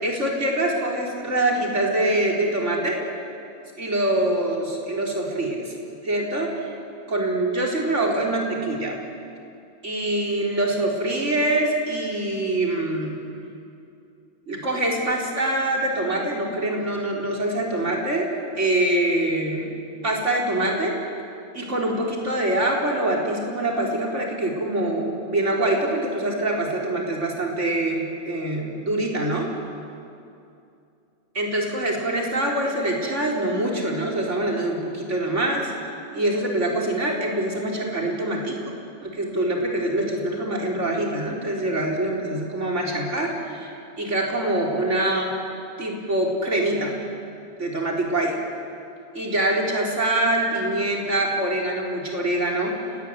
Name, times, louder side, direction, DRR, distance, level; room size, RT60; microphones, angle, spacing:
voice 1, 0.0-3.0 3.8-5.7 6.0-6.7 7.1-9.0 9.8-13.2 14.5-18.3 18.6-19.7 20.0-20.9 21.5-29.5 31.3-35.7 36.1-38.6 39.0-45.3 45.8-46.9 47.6-48.4 49.1-52.8, right 1 dB, 85° right, -1 dB, 4.4 m, -24 dB
29.5 x 18.0 x 9.4 m, 2.6 s
omnidirectional pair, 1.2 m